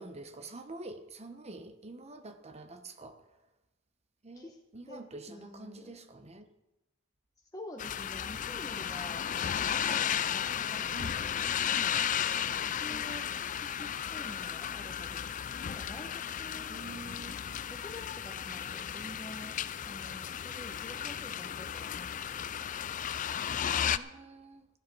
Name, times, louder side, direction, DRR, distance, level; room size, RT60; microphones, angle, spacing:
voice 1, 0.0-3.4 4.2-6.5 10.9-11.2 12.9-13.2 16.7-17.6 23.9-24.7, right 2 dB, 35° right, 1.1 m, -47 dB
voice 2, 5.3-6.0 7.5-10.1 10.3-12.1 12.7-16.8 17.7-19.6 19.8-22.6, left 1 dB, 15° left, 1.1 m, -48 dB
sound 1, 7.8-24.0, left 9 dB, 40° left, 0.4 m, -34 dB
14.5 x 9.5 x 6.1 m
head